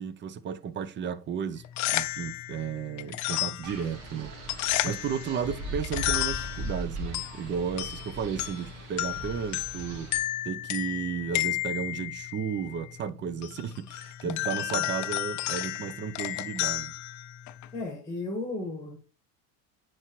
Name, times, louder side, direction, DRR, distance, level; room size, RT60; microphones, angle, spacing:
voice 1, 0.0-1.6 1.9-4.3 4.6-10.1 10.5-16.9, right 7 dB, 25° right, 0.5 m, -33 dB
sound 1, 1.6-17.8, left 16 dB, 40° left, 0.5 m, -33 dB
Wind, 3.6-10.2, right 1 dB, 80° right, 2.3 m, -39 dB
voice 2, 17.7-19.0, left 2 dB, 5° left, 1.7 m, -35 dB
9.8 x 4.7 x 3.1 m
supercardioid pair, 105°, 46 cm